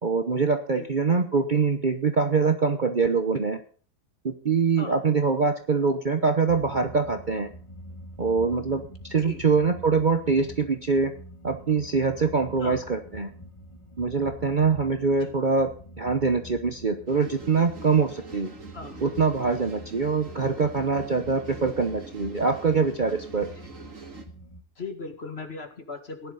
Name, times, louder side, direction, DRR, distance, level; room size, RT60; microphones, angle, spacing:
voice 1, 0.0-3.6 4.2-7.5 8.2-8.8 9.1-11.1 11.4-13.3 14.0-15.7 16.0-18.5 19.0-23.5, right 4 dB, 35° right, 6 dB, 1.0 m, -24 dB
sound 1, 6.5-24.6, equal, 20° left, 1.2 m, -45 dB
sound 2, 17.1-24.3, right 4 dB, 55° right, 2.3 m, -44 dB
voice 2, 24.8-26.3, left 3 dB, 40° left, 6 dB, 2.1 m, -38 dB
16.5 x 11.0 x 4.0 m, 0.42 s
omnidirectional pair, 1.7 m